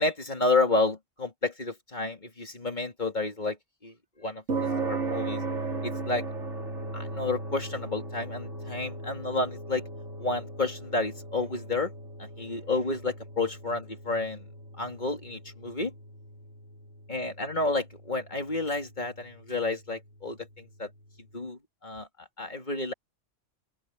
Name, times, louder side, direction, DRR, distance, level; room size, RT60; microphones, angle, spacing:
voice 1, 0.0-3.6 3.8-5.4 5.8-6.2 6.9-9.8 10.2-11.9 12.2-14.5 14.8-15.9 17.1-20.9 21.3-22.1 22.4-22.9, left 3 dB, 40° left, 3.5 m, -30 dB
sound 1, 4.5-21.0, right 3 dB, 75° right, 3.9 m, -38 dB
open air
omnidirectional pair, 1.2 m